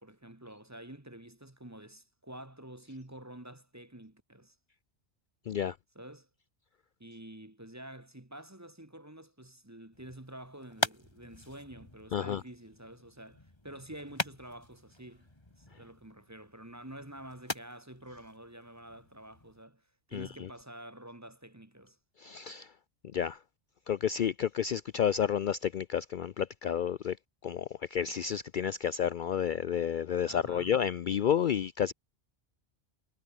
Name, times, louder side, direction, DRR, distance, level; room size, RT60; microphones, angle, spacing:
voice 1, 0.0-4.5 5.9-6.3 7.0-15.3 15.6-22.0 30.3-30.8, right 1 dB, 15° right, 1.5 m, -48 dB
sound 1, 9.9-19.6, left 2 dB, 25° left, 2.4 m, -42 dB
voice 2, 22.2-22.7 23.1-23.4 23.9-27.2 27.4-31.9, left 8 dB, 55° left, 0.6 m, -30 dB
omnidirectional pair, 1.1 m